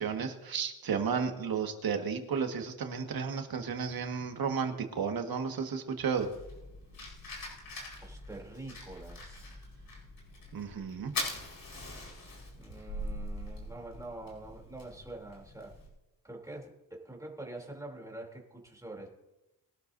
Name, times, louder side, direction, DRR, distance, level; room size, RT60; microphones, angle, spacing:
voice 1, 0.0-6.3 10.5-11.1, right 6 dB, 75° right, 5 dB, 1.7 m, -33 dB
Fire, 6.2-15.9, left 2 dB, 65° left, 4.7 m, -43 dB
voice 2, 8.0-9.6 12.6-15.7 16.2-19.1, right 2 dB, 10° right, -1 dB, 3.2 m, -45 dB
22.0 x 12.0 x 2.7 m, 0.99 s
wide cardioid pair, 110°, 36 cm